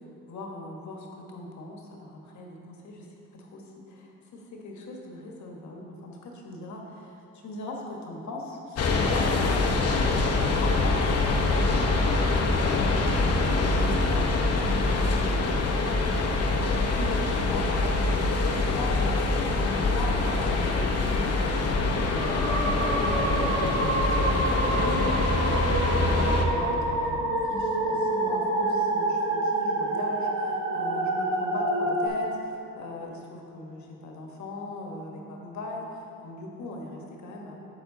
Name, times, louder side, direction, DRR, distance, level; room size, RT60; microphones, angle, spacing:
voice 1, 0.3-3.1 3.3-7.2 7.4-10.3 10.6-13.2 13.5-37.5, left 2 dB, 70° left, 0 dB, 1.5 m, -39 dB
sound 1, 8.8-26.5, left 3 dB, 55° left, 1.0 m, -24 dB
sound 2, 22.1-32.1, right 2 dB, 70° right, 2.0 m, -27 dB
8.5 x 7.5 x 3.9 m, 2.9 s
cardioid pair, 90°, 30 cm